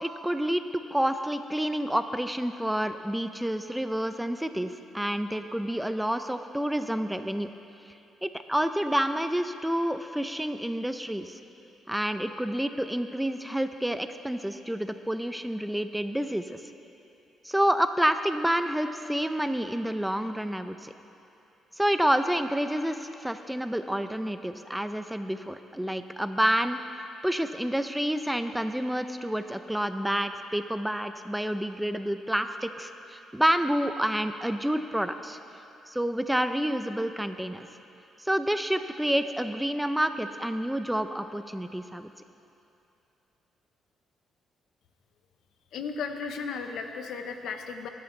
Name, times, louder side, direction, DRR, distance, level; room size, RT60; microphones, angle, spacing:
voice 1, 0.0-7.5 8.2-11.4 11.9-16.6 17.4-20.9 21.8-26.8 27.2-35.4 35.9-37.7 38.2-42.1, equal, 5° right, 9 dB, 0.6 m, -29 dB
voice 2, 45.7-47.9, left 5 dB, 80° left, 6 dB, 0.9 m, -35 dB
20.5 x 12.0 x 3.3 m, 2.8 s
cardioid pair, 90°, 0 cm